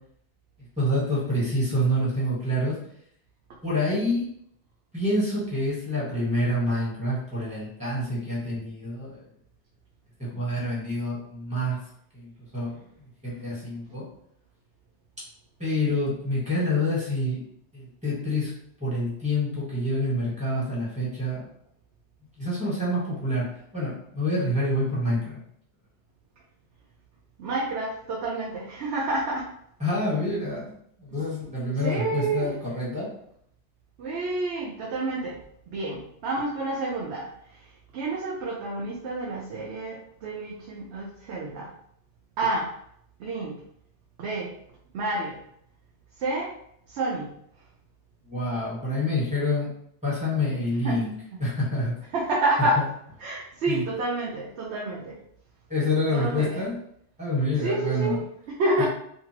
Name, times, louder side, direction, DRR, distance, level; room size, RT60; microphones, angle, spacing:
voice 1, 0.8-2.7 3.6-4.2 4.9-9.2 10.3-11.8 12.1-12.7 13.2-14.0 15.6-17.4 17.7-18.5 18.8-21.4 22.4-23.5 23.7-25.4 29.8-30.7 31.0-33.1 48.3-49.7 50.0-51.1 51.4-51.9 53.7-53.8 55.7-56.8 57.2-58.2 58.8-58.9, left 1 dB, 5° right, -8 dB, 1.3 m, -27 dB
voice 2, 27.4-29.5 31.1-31.2 31.8-32.5 34.0-35.4 35.7-37.6 37.9-41.7 42.4-42.7 43.2-43.6 44.2-44.5 44.9-45.4 46.2-46.5 46.9-47.3 50.8-51.0 52.1-52.8 53.2-55.2 56.1-56.7 57.6-58.9, right 2 dB, 75° right, -3 dB, 0.8 m, -29 dB
2.6 x 2.6 x 2.9 m, 0.70 s
omnidirectional pair, 1.2 m